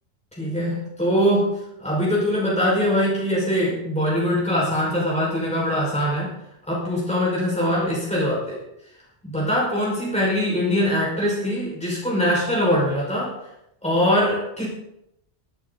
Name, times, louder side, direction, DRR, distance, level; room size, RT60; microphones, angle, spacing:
voice 1, 0.4-1.5 1.8-6.3 6.7-8.6 9.2-13.3 13.8-14.7, equal, 5° left, -6 dB, 5.9 m, -22 dB
25.0 x 8.4 x 4.2 m, 0.82 s
omnidirectional pair, 1.2 m